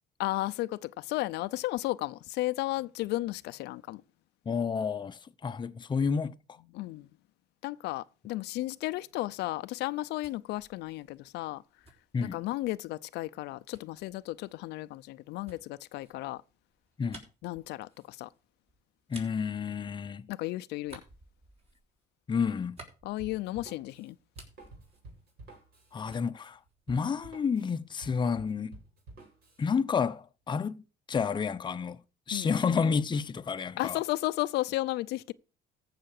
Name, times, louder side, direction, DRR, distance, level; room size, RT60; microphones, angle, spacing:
voice 1, 0.2-4.0 6.7-7.1 7.6-11.6 12.2-16.4 17.4-18.3 20.3-21.0 23.0-24.2 32.3-32.5 33.8-35.3, left 17 dB, 85° left, 0.6 m, -34 dB
voice 2, 4.5-6.3 12.1-12.4 17.0-17.2 19.1-20.3 22.3-22.8 25.9-26.6 26.9-28.8 29.6-30.8 31.1-32.0 32.3-34.0, left 6 dB, 25° left, 0.7 m, -30 dB
sound 1, 9.8-12.8 13.7-20.4 20.8-23.8 24.1-25.8 26.1-27.4, right 2 dB, 35° right, 5.1 m, -55 dB
Drum kit, 23.2-29.7, right 2 dB, 65° right, 6.0 m, -51 dB
14.5 x 5.8 x 6.5 m
cardioid pair, 110°, 17 cm